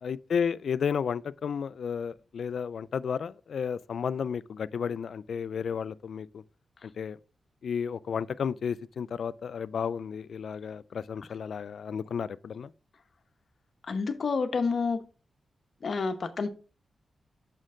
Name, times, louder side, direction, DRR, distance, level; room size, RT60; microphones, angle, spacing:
voice 1, 0.0-6.4 6.8-7.2 7.6-12.7, left 7 dB, 70° left, 0.3 m, -32 dB
voice 2, 13.9-15.0 15.8-16.5, left 4 dB, 55° left, 0.9 m, -29 dB
6.4 x 6.2 x 3.7 m
wide cardioid pair, 110°, 0 cm